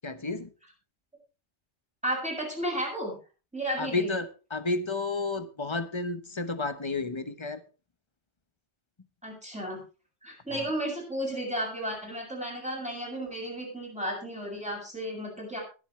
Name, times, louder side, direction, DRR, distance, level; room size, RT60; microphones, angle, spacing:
voice 1, 0.0-0.5 3.8-7.6 10.5-10.7, left 3 dB, 25° left, 10 dB, 1.0 m, -31 dB
voice 2, 2.0-3.1 3.5-4.1 9.2-9.8 10.2-15.6, right 1 dB, 5° right, -2 dB, 6.9 m, -33 dB
22.0 x 7.8 x 3.3 m, 0.33 s
omnidirectional pair, 1.2 m